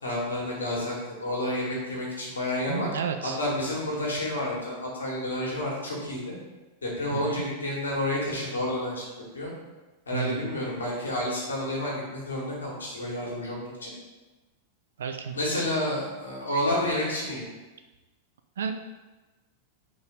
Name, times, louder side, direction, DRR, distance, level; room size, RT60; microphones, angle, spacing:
voice 1, 0.0-2.9 3.2-6.3 6.8-9.1 9.3-9.5 10.1-13.9 15.3-17.4, left 1 dB, 75° left, -4 dB, 1.9 m, -30 dB
voice 2, 2.7-3.4 7.1-7.4 10.1-10.5 15.0-15.3 18.6-18.7, right 7 dB, 65° right, 6 dB, 0.4 m, -31 dB
5.3 x 4.0 x 5.4 m, 1.2 s
figure-of-eight pair, 90°, 0 cm